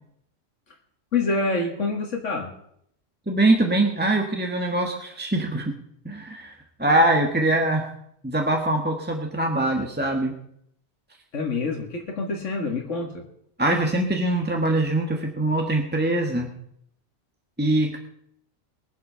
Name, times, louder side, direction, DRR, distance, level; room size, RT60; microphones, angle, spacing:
voice 1, 1.1-2.5 11.3-13.2, left 3 dB, 80° left, 1 dB, 2.1 m, -26 dB
voice 2, 3.3-5.7 6.0-7.9 8.2-10.3 13.6-16.5 17.6-18.0, right 1 dB, 10° right, 2 dB, 1.4 m, -23 dB
22.0 x 8.0 x 5.7 m, 0.71 s
omnidirectional pair, 1.2 m